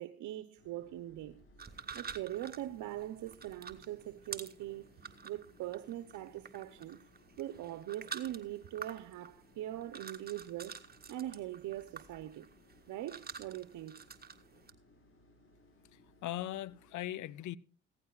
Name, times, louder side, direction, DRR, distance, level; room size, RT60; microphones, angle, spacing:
voice 1, 0.0-1.5 1.9-4.9 5.2-7.0 7.4-10.8 11.1-12.5 12.9-14.0, right 13 dB, 75° right, 0.8 m, -42 dB
sound 1, 0.6-17.0, left 1 dB, 45° left, 6.1 m, -64 dB
sound 2, 1.6-14.7, right 5 dB, 30° right, 1.8 m, -49 dB
voice 2, 15.9-17.6, left 13 dB, 75° left, 0.7 m, -40 dB
16.0 x 14.5 x 2.4 m
supercardioid pair, 60°, 30 cm